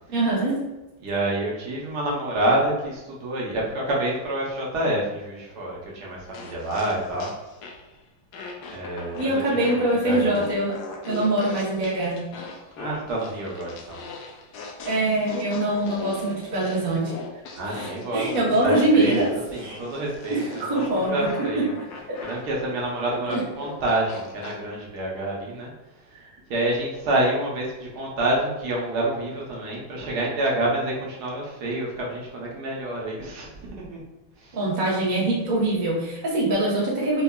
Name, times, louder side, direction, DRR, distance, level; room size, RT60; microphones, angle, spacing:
voice 1, 0.1-0.6 9.2-10.7 11.0-12.2 14.8-17.1 17.7-17.8 18.1-19.3 19.6-19.8 20.3-21.3 23.3-23.4 34.5-37.2, right 2 dB, 85° right, -5 dB, 0.4 m, -23 dB
voice 2, 1.0-7.3 8.7-10.4 12.8-14.0 17.6-18.2 18.6-21.7 22.2-26.2 26.5-34.0 34.4-34.6, right 1 dB, 65° right, -3 dB, 1.2 m, -28 dB
sound 1, 6.3-7.9 8.3-24.6, left 4 dB, 75° left, 1.0 m, -39 dB
4.5 x 2.3 x 2.2 m, 1.0 s
omnidirectional pair, 2.1 m